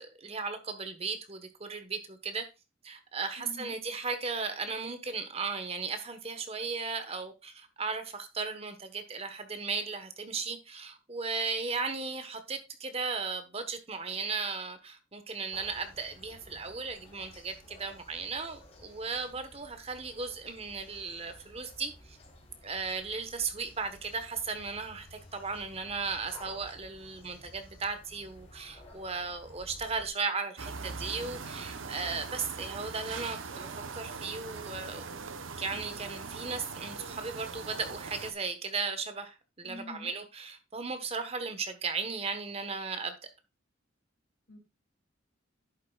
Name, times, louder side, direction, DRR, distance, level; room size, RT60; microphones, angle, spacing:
voice 1, 0.0-2.5 2.8-22.2 22.6-35.1 35.6-43.1, right 4 dB, 30° right, 9 dB, 1.2 m, -36 dB
voice 2, 3.4-3.7 39.6-40.1 44.5-44.6, left 2 dB, 75° left, 4 dB, 2.7 m, -45 dB
sound 1, 15.5-30.1, left 1 dB, 30° left, 3.4 m, -54 dB
sound 2, 30.6-38.3, right 4 dB, 85° right, 0.9 m, -41 dB
11.0 x 8.3 x 2.4 m, 0.26 s
head